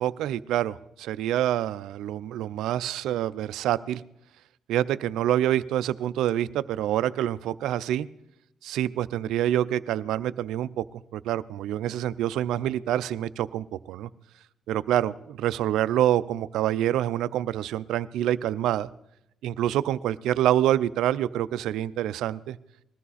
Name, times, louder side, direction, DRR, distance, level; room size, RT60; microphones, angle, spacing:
voice 1, 0.0-4.0 4.7-8.1 8.6-14.1 14.7-18.9 19.4-22.6, right 12 dB, 85° right, 16 dB, 0.5 m, -26 dB
20.5 x 14.0 x 4.2 m, 0.81 s
cardioid pair, 90°, 0 cm